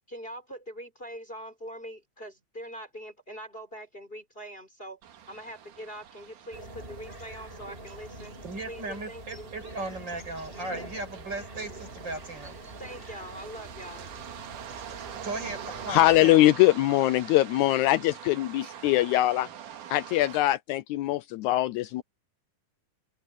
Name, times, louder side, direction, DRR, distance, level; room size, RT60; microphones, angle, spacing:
voice 1, 0.0-5.0 5.3-8.3 8.7-9.5 12.8-14.1, equal, 15° left, 3.8 m, -43 dB
sound 1, 5.0-20.4, right 9 dB, 85° right, 3.3 m, -45 dB
sound 2, 6.5-16.2, right 1 dB, 15° right, 6.0 m, -45 dB
voice 2, 8.4-12.6 15.2-16.5, right 2 dB, 35° right, 6.7 m, -37 dB
voice 3, 15.9-19.5 19.9-22.0, left 15 dB, 80° left, 1.9 m, -22 dB
open air
omnidirectional pair, 3.5 m